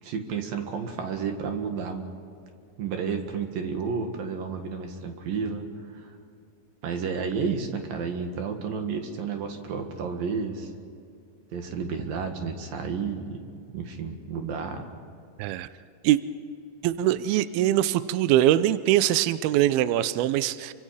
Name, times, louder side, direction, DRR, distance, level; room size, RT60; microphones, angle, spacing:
voice 1, 0.0-2.1 2.8-6.1 6.8-10.7 11.5-13.4 13.7-14.9, right 5 dB, 60° right, 4 dB, 3.1 m, -31 dB
voice 2, 15.4-15.7 16.0-16.2 16.8-20.7, right 13 dB, 85° right, 14 dB, 2.2 m, -22 dB
29.5 x 25.0 x 4.9 m, 2.4 s
omnidirectional pair, 5.2 m